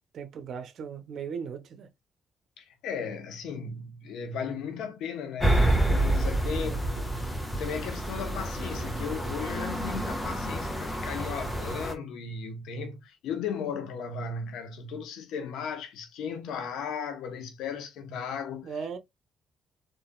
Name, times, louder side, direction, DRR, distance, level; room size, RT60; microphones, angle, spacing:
voice 1, 0.1-1.9 18.6-19.0, right 6 dB, 65° right, 0.9 m, -37 dB
voice 2, 2.6-18.7, left 6 dB, 85° left, 0.9 m, -36 dB
sound 1, 5.4-11.9, right 1 dB, 10° left, 1.3 m, -28 dB
4.0 x 3.3 x 2.3 m
cardioid pair, 90°, 0 cm